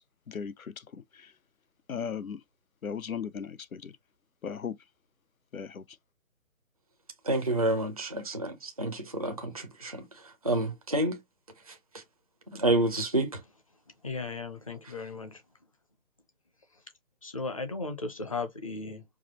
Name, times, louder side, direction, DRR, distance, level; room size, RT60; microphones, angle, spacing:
voice 1, 1.9-2.4 2.8-3.9 4.4-4.7 5.5-5.8, left 7 dB, 85° left, 0.7 m, -36 dB
voice 2, 7.2-11.2 11.7-12.0 12.5-13.4, right 1 dB, 30° right, 0.4 m, -29 dB
voice 3, 14.0-15.4 17.2-19.0, left 3 dB, 25° left, 0.5 m, -36 dB
4.8 x 2.1 x 2.9 m
figure-of-eight pair, 145°, 41 cm